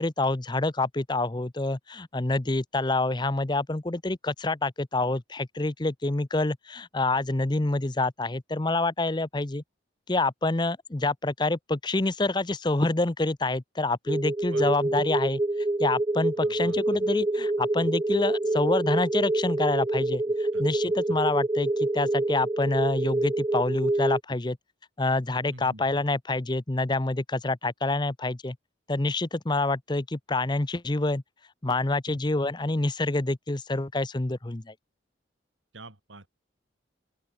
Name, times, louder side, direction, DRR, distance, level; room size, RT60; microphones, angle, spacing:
voice 1, 0.0-9.6 10.1-15.4 15.8-20.2 20.6-24.6 25.0-28.6 28.9-31.2 31.6-34.7, left 2 dB, 25° left, 0.7 m, -27 dB
sound 1, 14.1-24.2, right 2 dB, 20° right, 0.4 m, -27 dB
voice 2, 16.3-17.0 20.2-21.2 25.5-25.8 35.7-36.4, right 2 dB, 90° right, 4.8 m, -47 dB
open air
head